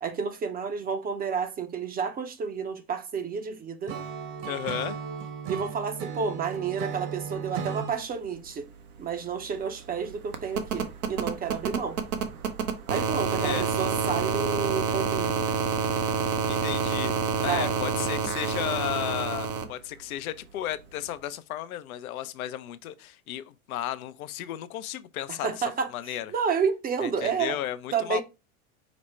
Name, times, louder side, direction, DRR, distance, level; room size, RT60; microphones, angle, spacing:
voice 1, 0.0-4.0 5.5-8.7 9.0-12.0 12.9-15.5 17.5-17.7 25.4-27.6 27.9-28.2, right 6 dB, 20° right, 0.5 m, -30 dB
Acoustic guitar / Strum, 3.9-8.0, right 6 dB, 45° right, 0.9 m, -35 dB
voice 2, 4.4-5.0 13.4-13.7 16.4-17.1 17.4-25.6 25.9-26.3 27.0-28.2, left 12 dB, 75° left, 0.6 m, -34 dB
sound 1, 8.4-8.5 8.7-19.6 21.1-21.2, right 5 dB, 85° right, 0.8 m, -29 dB
5.1 x 2.1 x 4.2 m
hypercardioid pair, 95°, 43 cm